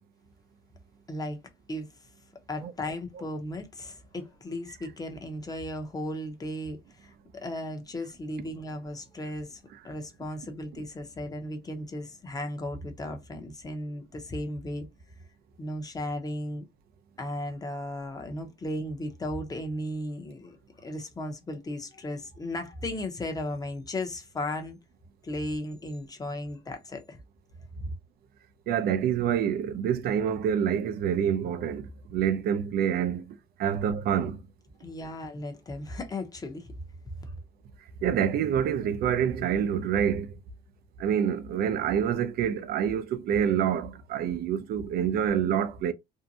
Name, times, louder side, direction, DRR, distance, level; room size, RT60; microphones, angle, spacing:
voice 1, 1.1-1.4 1.7-1.9 2.5-14.9 15.6-16.7 17.2-24.8 25.2-27.2 27.7-27.9 34.8-36.7 37.2-37.3, left 1 dB, 20° left, 0.7 m, -36 dB
voice 2, 28.7-31.8 32.1-33.2 33.6-34.4 38.0-40.3 41.0-45.9, right 8 dB, 65° right, 0.4 m, -27 dB
2.6 x 2.1 x 2.6 m
cardioid pair, 110°, 17 cm